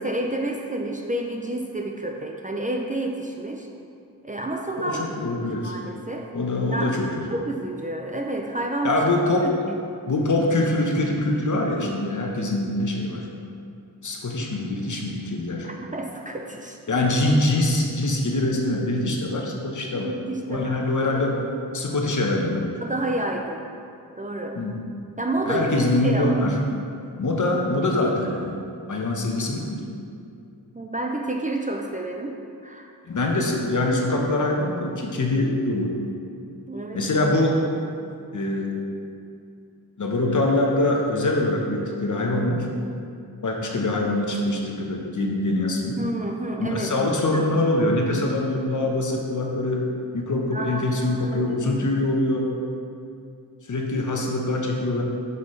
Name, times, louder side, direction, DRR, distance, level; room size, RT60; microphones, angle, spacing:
voice 1, 0.0-3.7 4.2-6.3 6.7-6.9 7.3-9.0 9.4-9.8 15.6-16.8 20.0-21.2 22.8-23.6 24.1-24.6 25.2-26.4 30.7-32.9 36.7-37.0 46.0-47.5 50.5-51.9, right 1 dB, 20° right, 1 dB, 0.5 m, -30 dB
voice 2, 4.8-5.7 6.3-7.0 8.8-9.5 10.1-13.2 14.0-15.7 16.9-20.1 20.5-21.4 21.7-22.7 24.5-24.8 25.4-26.6 27.2-29.8 33.1-35.9 36.9-37.6 38.3-38.7 40.0-42.7 43.4-46.0 46.6-49.8 50.1-52.5 53.7-55.0, left 2 dB, 50° left, 0 dB, 1.0 m, -24 dB
6.5 x 5.5 x 3.2 m, 2.5 s
cardioid pair, 55°, 40 cm